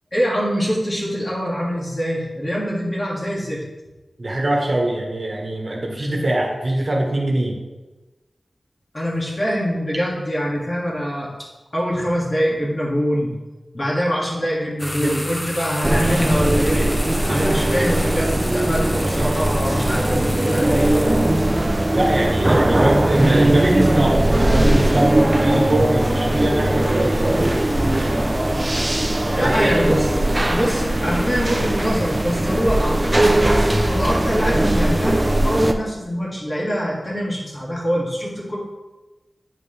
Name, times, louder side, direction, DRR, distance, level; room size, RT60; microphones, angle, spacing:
voice 1, 0.1-3.6 8.9-11.3 11.7-13.4 13.7-16.9 17.3-21.4 29.3-30.1 30.5-33.3 33.9-38.6, equal, 40° left, -5 dB, 2.4 m, -24 dB
voice 2, 4.2-7.5 14.9-15.2 21.9-27.4 29.2-29.7, right 1 dB, 45° right, 0 dB, 1.4 m, -22 dB
sound 1, 14.8-21.6, left 1 dB, 20° left, 0.9 m, -33 dB
sound 2, 15.8-35.7, right 1 dB, 25° right, 0.6 m, -19 dB
8.4 x 5.2 x 3.4 m, 1.2 s
wide cardioid pair, 60°, 0 cm